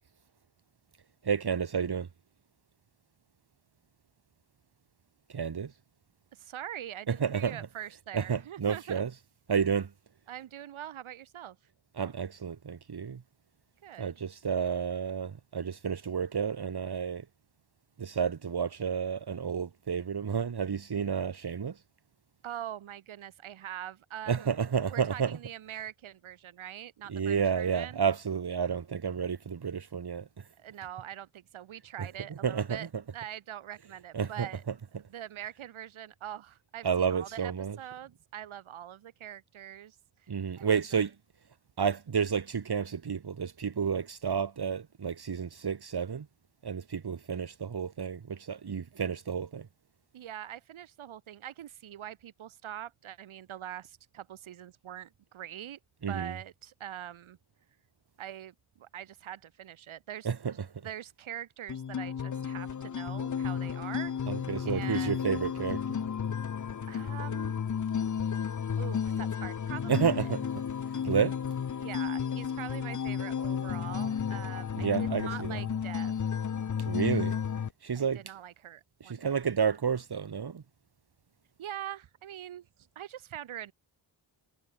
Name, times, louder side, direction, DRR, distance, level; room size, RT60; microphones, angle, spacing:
voice 1, 1.2-2.1 5.3-5.7 7.1-7.6 8.1-9.1 9.5-9.9 12.0-13.2 14.0-17.2 18.0-21.7 24.3-25.4 27.1-30.2 32.0-32.1 32.4-32.9 34.1-34.5 36.8-37.8 40.3-41.1 41.8-46.3 46.6-49.7 56.0-56.3 60.2-60.5 64.3-66.0 69.9-70.4 71.0-71.3 74.8-75.6 76.8-77.3 77.8-78.2 79.0-80.6, right 6 dB, 55° right, 2.6 m, -31 dB
voice 2, 6.3-9.0 10.3-11.6 13.8-14.1 22.4-24.5 24.8-28.0 30.6-32.9 33.1-34.6 35.0-37.5 37.8-40.0 40.2-40.3 40.6-40.8 50.1-55.8 56.1-57.4 58.2-60.6 60.8-64.1 64.7-65.3 66.9-67.5 68.8-70.3 71.8-76.2 77.9-79.4 81.6-82.7 83.0-83.7, right 11 dB, 90° right, 2.4 m, -43 dB
sound 1, 61.7-77.7, left 7 dB, 40° left, 0.9 m, -33 dB
cardioid pair, 60°, 47 cm